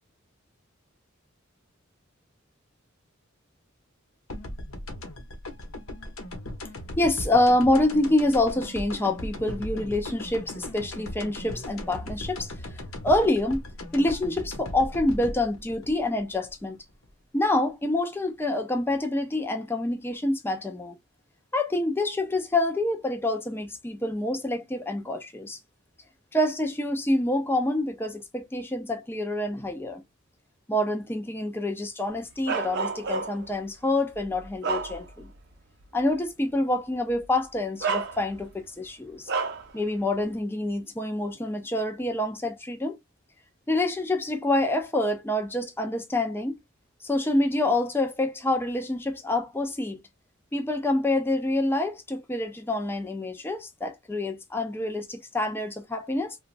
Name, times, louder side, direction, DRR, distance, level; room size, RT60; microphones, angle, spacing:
sound 1, 4.3-17.1, left 1 dB, 90° left, 0.8 m, -38 dB
voice 1, 7.0-12.5 13.0-13.6 13.9-16.8 17.3-21.0 21.5-25.6 26.3-30.0 30.7-35.3 35.9-39.3 39.7-43.0 43.7-46.6 47.0-50.0 50.5-56.4, left 1 dB, 10° left, 0.4 m, -27 dB
Bark, 32.5-33.5 34.1-35.4 35.8-36.0 37.1-37.2 37.8-38.6 39.3-39.7, right 4 dB, 55° right, 0.5 m, -30 dB
3.1 x 2.2 x 2.4 m
head